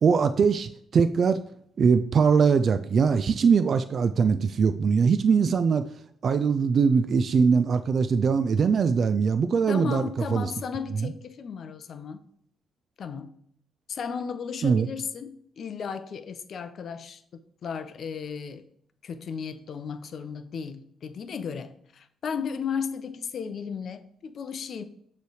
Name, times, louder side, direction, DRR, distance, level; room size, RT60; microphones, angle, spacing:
voice 1, 0.0-1.4 1.8-5.9 6.2-10.0 10.3-10.5 11.0-11.1 14.6-14.9, right 5 dB, 50° right, 0.3 m, -22 dB
voice 2, 9.7-12.2 13.0-13.4 13.9-18.7 19.0-24.8, left 6 dB, 55° left, 0.6 m, -35 dB
6.7 x 3.2 x 4.8 m
cardioid pair, 90°, 0 cm